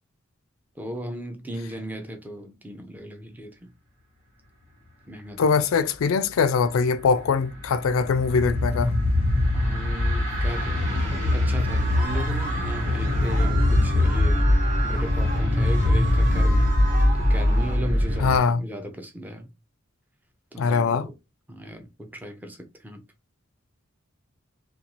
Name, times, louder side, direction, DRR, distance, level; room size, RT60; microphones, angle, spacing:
voice 1, 0.8-3.6 5.1-5.8 9.5-14.5 14.8-16.7 17.2-19.5 20.5-21.1 21.5-22.6 22.8-23.0, equal, 10° right, 0.5 m, -36 dB
voice 2, 5.4-8.9 16.3-16.5 18.2-18.7 20.6-21.1, left 5 dB, 85° left, 0.4 m, -22 dB
sound 1, 6.7-18.4, left 1 dB, 85° right, 1.3 m, -22 dB
sound 2, 10.4-17.8, right 3 dB, 45° right, 0.8 m, -36 dB
2.5 x 2.3 x 2.9 m
head